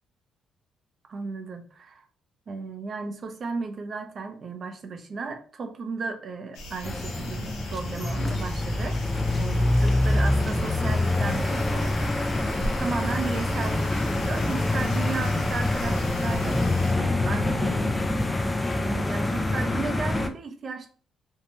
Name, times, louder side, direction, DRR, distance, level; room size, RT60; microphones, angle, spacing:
voice 1, 1.1-2.0 2.5-12.1 12.5-17.9 18.7-20.9, right 4 dB, 50° right, 6 dB, 0.5 m, -34 dB
sound 1, 6.5-16.9, equal, 90° left, 0.7 m, -39 dB
sound 2, 6.8-20.3, left 2 dB, 15° left, 0.4 m, -25 dB
2.7 x 2.2 x 2.9 m, 0.42 s
cardioid pair, 90°, 0 cm